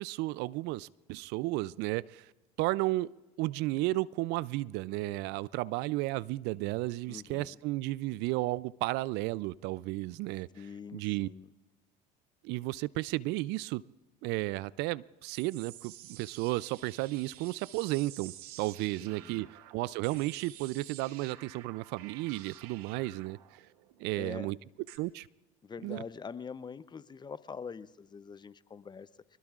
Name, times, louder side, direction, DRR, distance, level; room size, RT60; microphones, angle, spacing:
voice 1, 0.0-2.3 2.6-3.1 3.4-10.5 10.9-11.3 12.4-13.8 14.2-19.5 19.7-23.4 24.0-24.6 25.0-25.3 25.8-26.0, right 19 dB, 65° right, 22 dB, 0.4 m, -33 dB
voice 2, 7.1-7.6 10.5-11.5 19.0-19.5 24.2-24.5 25.6-29.4, left 5 dB, 25° left, 15 dB, 0.7 m, -44 dB
sound 1, 15.3-25.0, right 14 dB, 85° right, 1.0 m, -51 dB
24.5 x 20.5 x 2.4 m, 1.2 s
supercardioid pair, 85°, 19 cm